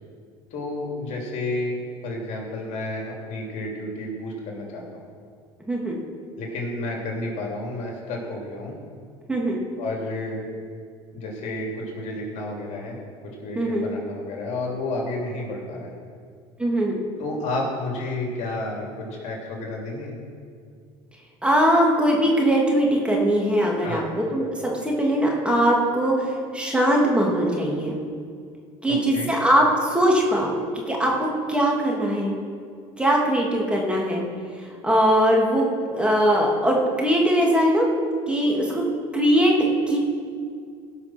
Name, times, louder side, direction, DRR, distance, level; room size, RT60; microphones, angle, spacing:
voice 1, 0.5-5.0 6.4-8.7 9.8-10.4 11.1-13.0 13.4-15.9 17.2-20.2 23.8-24.1 28.9-29.3, left 2 dB, 55° left, -1 dB, 3.2 m, -31 dB
voice 2, 13.5-13.9 16.6-17.0 21.4-28.0 28.8-32.3 33.0-34.2 34.6-35.7 35.9-37.9 38.3-38.8 39.1-39.5 39.9-40.0, equal, 5° right, -2 dB, 2.9 m, -21 dB
17.0 x 5.9 x 6.2 m, 2.2 s
hypercardioid pair, 80°, 14 cm